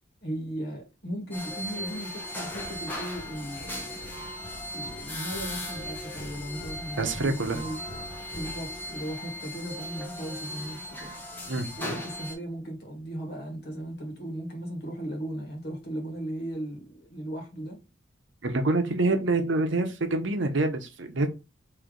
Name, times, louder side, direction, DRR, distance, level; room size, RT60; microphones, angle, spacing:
voice 1, 0.2-4.1 4.7-7.8 8.3-11.2 11.8-17.8, right 1 dB, 55° left, 1.6 m, -37 dB
sound 1, 1.3-12.3, left 1 dB, 10° left, 0.9 m, -38 dB
sound 2, 3.1-9.1, equal, 85° left, 1.7 m, -46 dB
voice 2, 7.0-7.6 11.5-12.0 18.4-21.3, right 2 dB, 75° right, 0.8 m, -26 dB
3.3 x 3.1 x 3.8 m
head